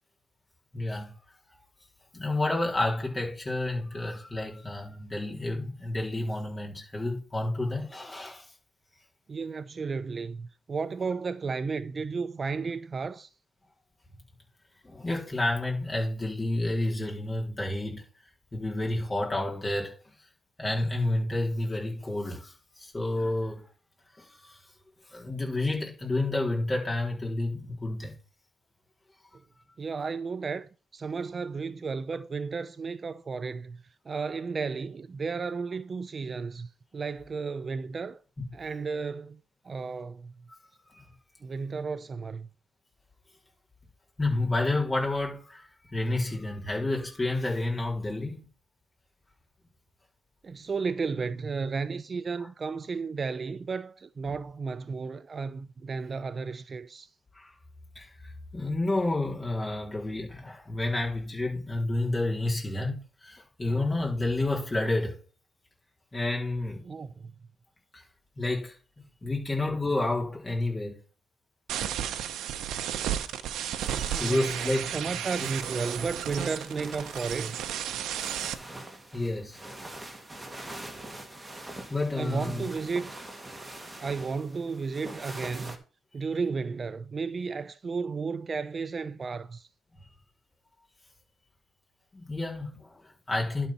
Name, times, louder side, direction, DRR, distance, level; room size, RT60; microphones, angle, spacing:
voice 1, 0.7-1.1 2.1-8.5 14.8-18.0 18.5-19.9 20.6-23.6 24.2-24.6 25.1-28.1 40.8-41.1 44.2-48.5 54.3-54.4 57.3-57.5 58.0-65.2 66.1-66.8 67.9-68.0 68.4-68.8 69.2-71.0 74.2-75.1 79.1-79.6 80.7-81.1 81.9-82.7 92.1-93.7, left 2 dB, 20° left, 3.7 m, -30 dB
voice 2, 9.3-13.3 29.8-33.8 34.1-38.2 38.5-39.4 39.6-40.3 41.4-42.5 50.4-57.1 66.8-67.3 74.1-77.6 82.1-83.2 84.0-85.8 86.1-89.7, right 4 dB, 40° right, 0.4 m, -33 dB
sound 1, 71.7-78.5, right 10 dB, 80° right, 0.8 m, -33 dB
sound 2, 73.8-85.8, right 1 dB, 10° right, 1.6 m, -44 dB
11.5 x 4.2 x 5.6 m
cardioid pair, 90°, 0 cm